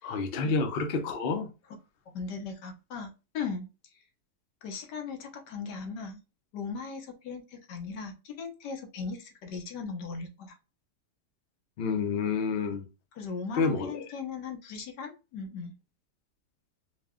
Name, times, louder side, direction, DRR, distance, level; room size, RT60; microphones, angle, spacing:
voice 1, 0.0-1.5 11.8-12.8 13.6-14.0, left 4 dB, 55° left, 0.7 m, -29 dB
voice 2, 2.1-3.7 4.6-6.2 6.5-10.6 13.1-15.7, left 5 dB, 90° left, 1.4 m, -38 dB
4.6 x 2.2 x 3.6 m
omnidirectional pair, 1.8 m